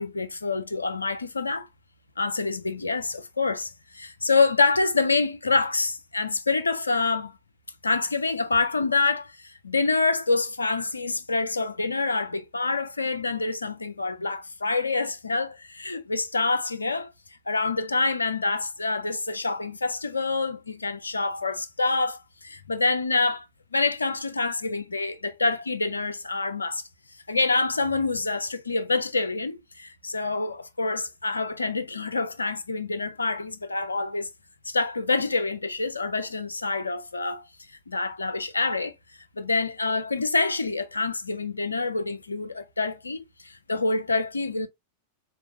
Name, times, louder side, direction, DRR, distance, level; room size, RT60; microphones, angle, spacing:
voice 1, 0.0-1.7 2.2-7.4 7.8-17.1 17.5-23.5 23.7-26.8 27.3-34.3 34.7-37.4 37.9-38.9 39.4-44.7, left 3 dB, 80° left, 0.5 m, -26 dB
3.9 x 3.4 x 2.6 m
figure-of-eight pair, 90°, 0 cm